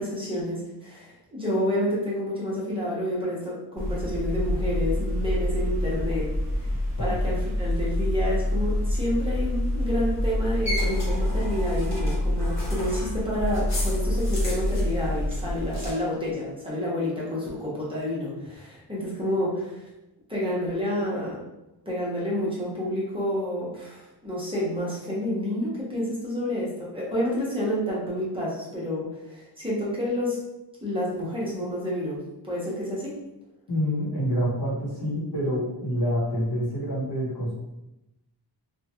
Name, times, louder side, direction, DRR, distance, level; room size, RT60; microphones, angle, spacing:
voice 1, 0.0-6.3 6.6-6.7 7.0-19.9 20.3-21.4 21.9-30.4 30.8-32.2 32.4-33.1, equal, 15° right, -7 dB, 1.0 m, -29 dB
sound 1, 3.8-15.9, left 1 dB, 40° left, 1.0 m, -26 dB
voice 2, 33.7-37.5, equal, 70° left, -5 dB, 1.0 m, -27 dB
2.9 x 2.3 x 2.9 m, 0.93 s
wide cardioid pair, 110°, 40 cm